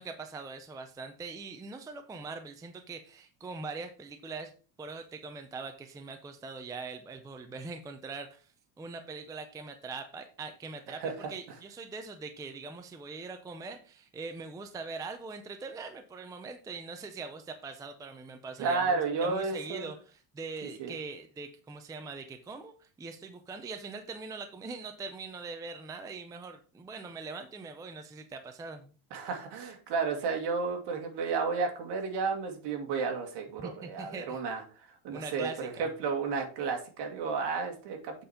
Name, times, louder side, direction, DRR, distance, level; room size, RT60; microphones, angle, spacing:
voice 1, 0.0-4.5 4.8-8.5 8.8-28.9 33.6-34.4 35.1-35.9, right 4 dB, 10° right, 7 dB, 0.5 m, -42 dB
voice 2, 10.9-11.3 18.6-19.9 20.8-20.9 29.1-38.1, right 4 dB, 60° right, 3 dB, 2.2 m, -32 dB
8.1 x 4.3 x 5.0 m, 0.38 s
cardioid pair, 155°, 46 cm